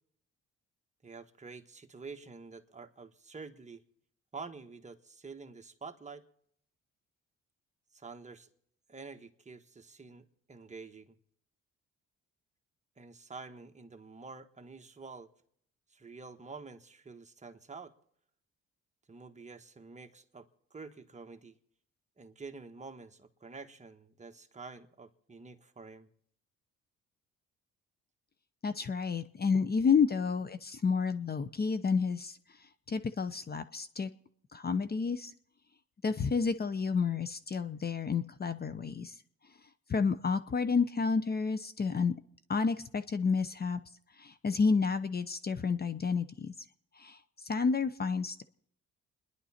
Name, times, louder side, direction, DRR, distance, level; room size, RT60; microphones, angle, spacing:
voice 1, 1.0-3.8 4.3-6.2 7.9-8.5 8.9-11.2 13.0-15.3 15.9-17.9 19.1-21.6 22.2-26.1, right 4 dB, 25° right, 5 dB, 1.4 m, -48 dB
voice 2, 28.6-32.4 32.9-34.1 34.5-35.3 36.0-39.1 39.9-42.1 42.5-43.8 44.2-46.5 47.0-48.4, left 5 dB, 30° left, 12 dB, 0.8 m, -30 dB
29.0 x 11.0 x 4.3 m, 0.70 s
cardioid pair, 90°, 30 cm